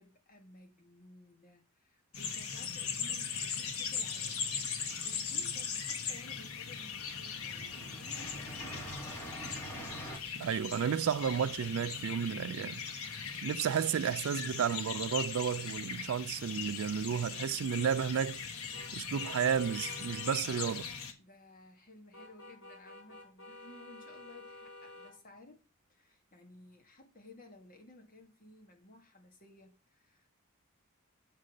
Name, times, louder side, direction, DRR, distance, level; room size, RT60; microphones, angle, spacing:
voice 1, 0.0-9.2 21.2-25.6 25.9-30.3, left 2 dB, 40° left, 2.1 m, -57 dB
sound 1, 2.1-21.1, left 6 dB, 85° left, 1.5 m, -39 dB
sound 2, 4.8-5.7 6.5-6.7 7.0-10.2, equal, 10° left, 2.3 m, -46 dB
voice 2, 10.4-12.8 13.4-18.4 18.9-20.9, right 8 dB, 65° right, 0.3 m, -32 dB
sound 3, 18.7-20.4 22.1-25.1, left 2 dB, 60° left, 2.4 m, -51 dB
7.4 x 5.5 x 6.4 m
head